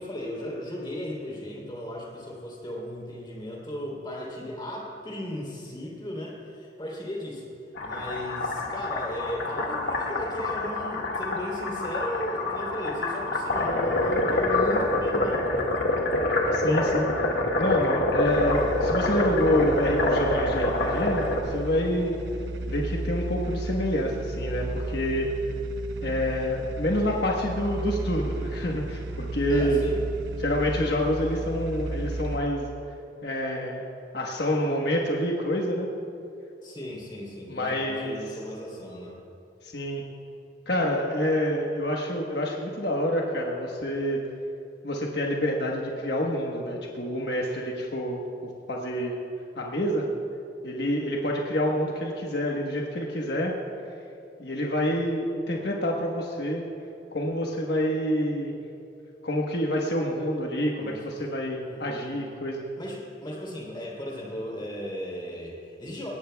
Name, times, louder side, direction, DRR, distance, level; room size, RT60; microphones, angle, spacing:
voice 1, 0.0-7.5 7.8-15.5 29.5-30.0 36.6-39.1 60.8-61.0 61.5-62.4 62.8-66.1, left 1 dB, 25° left, -3 dB, 3.2 m, -36 dB
sound 1, 7.8-21.4, left 2 dB, 85° left, 1.8 m, -26 dB
voice 2, 16.5-17.3 17.6-22.2 22.7-25.3 26.0-29.8 30.4-32.7 33.2-33.8 34.1-35.9 37.5-38.2 39.6-40.0 40.7-44.2 44.8-48.2 48.7-49.2 49.6-50.1 50.6-53.5 54.4-56.7 57.1-58.5 59.2-62.6, equal, 60° left, -1 dB, 1.2 m, -27 dB
sound 2, 18.3-32.4, right 2 dB, 80° right, 0.8 m, -34 dB
21.0 x 18.5 x 2.3 m, 2.7 s
head